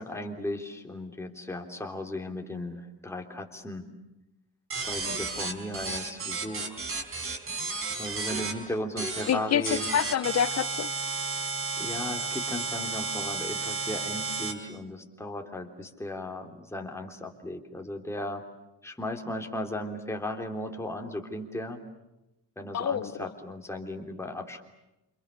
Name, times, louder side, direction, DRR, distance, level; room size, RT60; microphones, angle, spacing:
voice 1, 0.0-3.9 4.7-6.8 8.0-9.9 11.8-18.5 18.8-21.8 22.6-24.6, left 1 dB, 5° left, 3.3 m, -36 dB
sound 1, 4.7-8.5 9.0-9.3 9.7-14.5, right 3 dB, 30° right, 4.9 m, -32 dB
voice 2, 9.3-10.9 22.7-23.1, left 9 dB, 40° left, 1.0 m, -27 dB
29.0 x 28.0 x 6.9 m
cardioid pair, 160°, 41 cm